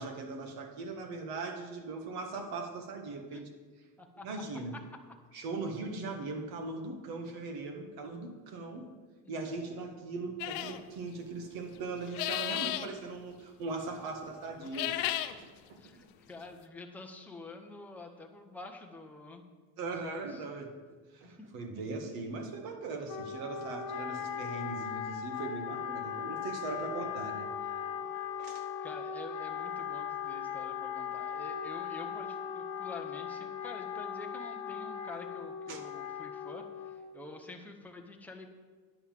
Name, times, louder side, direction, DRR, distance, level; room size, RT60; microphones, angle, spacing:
voice 1, 0.0-3.5 4.2-4.7 5.3-8.9 9.3-15.8 19.8-20.7 21.1-27.5 27.8-28.1 28.4-28.6 35.7-35.8, right 3 dB, 55° right, 5 dB, 1.6 m, -40 dB
sound 1, 10.4-10.8 12.0-12.9 14.6-15.3, left 14 dB, 65° left, 0.7 m, -33 dB
voice 2, 15.8-19.4 19.8-20.5 21.2-21.5 21.9-22.0 28.5-38.5, left 3 dB, 5° left, 2 dB, 0.8 m, -48 dB
Wind instrument woodwind instrument, 23.1-37.1, left 8 dB, 45° left, 1.1 m, -38 dB
9.6 x 5.5 x 7.5 m, 1.4 s
cardioid pair, 145°, 43 cm